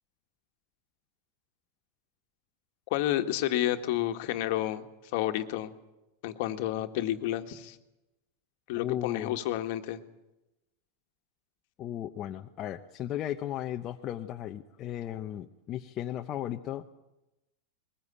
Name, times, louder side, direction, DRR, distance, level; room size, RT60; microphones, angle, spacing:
voice 1, 2.9-4.9 5.1-5.7 6.2-7.8 8.7-10.0, left 13 dB, 60° left, 7 dB, 1.6 m, -30 dB
voice 2, 8.7-9.4 11.8-16.8, left 12 dB, 30° left, 4 dB, 0.9 m, -36 dB
21.0 x 16.0 x 9.9 m, 0.95 s
supercardioid pair, 145°, 0 cm